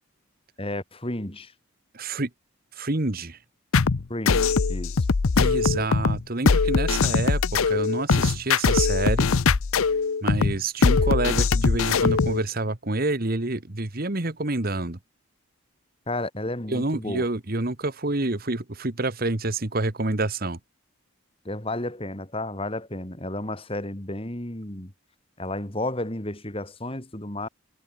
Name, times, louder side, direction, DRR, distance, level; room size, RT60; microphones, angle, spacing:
voice 1, 0.6-1.5 4.1-5.1 16.1-17.2 21.4-24.9 25.4-27.5, left 1 dB, 25° left, 2.5 m, -32 dB
voice 2, 1.9-2.3 2.7-3.4 5.4-9.3 10.2-15.0 16.7-20.6, right 2 dB, 40° right, 1.4 m, -28 dB
sound 1, 3.7-12.4, left 4 dB, 75° left, 0.7 m, -21 dB
head